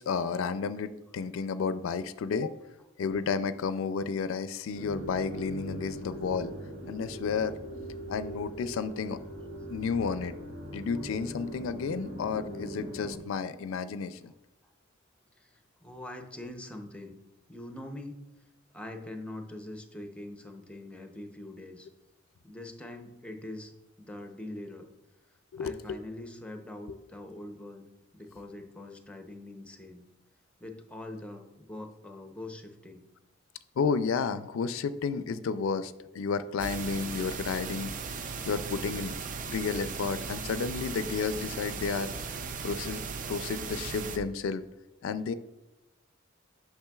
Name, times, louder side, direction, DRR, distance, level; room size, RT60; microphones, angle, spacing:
voice 1, 0.0-2.5 3.0-6.5 6.9-7.5 8.1-9.2 9.7-10.3 10.7-14.3 25.5-26.0 26.9-27.0 33.8-39.2 39.5-42.4 42.6-43.0 43.3-44.6 45.0-45.3, left 5 dB, 90° left, 13 dB, 0.4 m, -32 dB
sound 1, 4.7-13.2, right 1 dB, 90° right, 2.0 m, -41 dB
voice 2, 15.4-17.2 17.5-18.3 18.7-21.9 22.4-23.7 24.0-24.9 25.6-27.8 28.1-30.0 30.6-33.0, left 1 dB, 5° left, 5 dB, 0.6 m, -43 dB
sound 2, 36.6-44.2, right 5 dB, 40° right, 0.5 m, -37 dB
8.7 x 5.9 x 2.3 m, 1.0 s
head